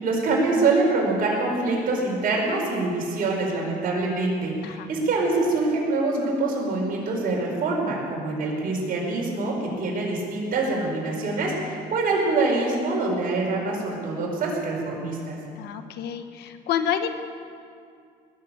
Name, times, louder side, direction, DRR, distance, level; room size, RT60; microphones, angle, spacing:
voice 1, 0.0-15.4, right 3 dB, 60° right, -2 dB, 4.9 m, -25 dB
voice 2, 15.5-17.1, left 9 dB, 80° left, 8 dB, 1.2 m, -28 dB
20.0 x 7.7 x 8.9 m, 2.3 s
cardioid pair, 110°, 17 cm